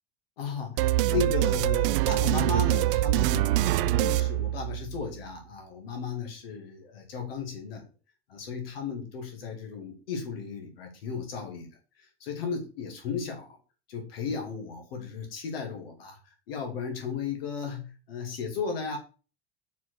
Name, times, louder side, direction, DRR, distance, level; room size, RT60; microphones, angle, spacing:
voice 1, 0.4-7.9 8.3-11.7 12.2-13.6 13.9-16.2 16.5-19.0, left 5 dB, 75° left, 2 dB, 2.5 m, -35 dB
sound 1, 0.8-5.1, right 16 dB, 65° right, 0.5 m, -25 dB
5.5 x 4.9 x 6.5 m, 0.36 s
hypercardioid pair, 70°, 30 cm